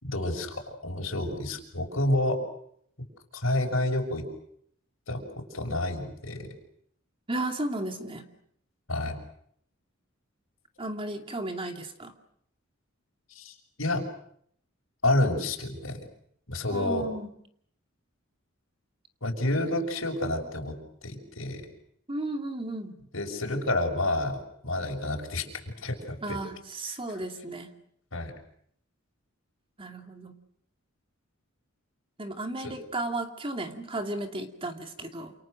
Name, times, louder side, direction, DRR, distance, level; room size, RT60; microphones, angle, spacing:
voice 1, 0.0-2.4 3.3-4.2 5.1-5.2 5.5-6.5 8.9-9.2 13.3-14.0 15.0-16.0 16.5-17.1 19.2-20.7 21.0-21.6 23.1-24.4 24.6-26.4 28.1-28.3 32.6-32.7, left 1 dB, 70° left, 3 dB, 6.2 m, -29 dB
voice 2, 7.3-8.3 10.8-12.1 16.7-17.3 22.1-23.0 26.2-27.7 29.8-30.4 32.2-35.3, right 2 dB, 25° right, 5 dB, 2.6 m, -34 dB
28.5 x 28.5 x 6.5 m, 0.69 s
head